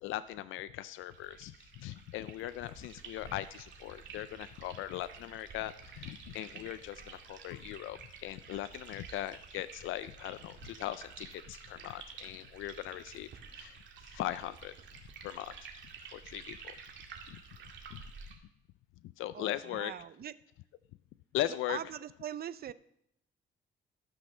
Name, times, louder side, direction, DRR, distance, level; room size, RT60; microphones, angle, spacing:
voice 1, 0.0-14.7 15.2-15.5 16.1-16.8 17.3-17.4 17.9-18.0 19.2-19.9 21.3-21.8, left 14 dB, 85° left, 15 dB, 0.4 m, -39 dB
sound 1, 1.1-18.3, right 5 dB, 70° right, 2.0 m, -51 dB
voice 2, 19.3-20.3 21.7-22.7, right 10 dB, 50° right, 16 dB, 0.6 m, -41 dB
13.0 x 6.2 x 6.2 m, 0.74 s
cardioid pair, 90°, 20 cm